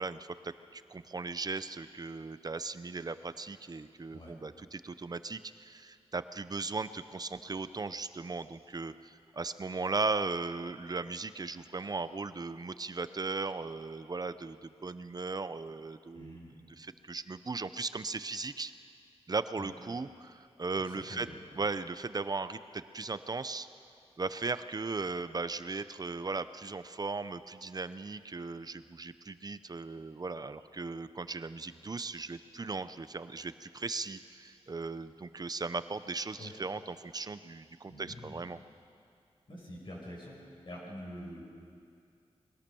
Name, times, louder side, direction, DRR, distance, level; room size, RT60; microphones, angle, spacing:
voice 1, 0.0-16.4 16.8-18.7 19.3-21.3 21.6-23.7 24.2-38.6, right 3 dB, 35° right, 13 dB, 0.7 m, -37 dB
voice 2, 16.1-16.6 19.6-19.7 20.9-21.4 36.4-36.5 37.9-38.5 39.5-41.4, equal, 50° left, -4 dB, 5.6 m, -46 dB
21.5 x 17.0 x 7.0 m, 2.4 s
wide cardioid pair, 115°, 11 cm